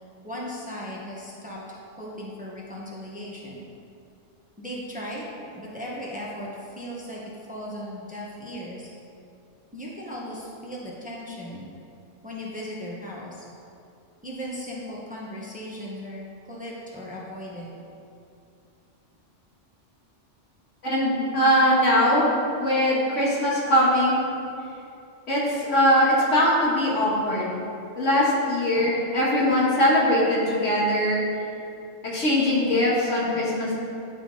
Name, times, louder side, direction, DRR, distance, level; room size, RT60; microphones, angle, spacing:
voice 1, 0.2-3.6 4.6-5.3 5.5-7.2 7.5-8.9 9.7-11.7 12.2-13.5 14.2-17.8, equal, 10° right, -5 dB, 0.8 m, -37 dB
voice 2, 20.8-22.3 22.6-24.3 25.3-27.5 28.0-31.2 32.0-33.7, equal, 85° left, -6 dB, 1.9 m, -21 dB
10.0 x 3.5 x 3.7 m, 2.6 s
omnidirectional pair, 1.2 m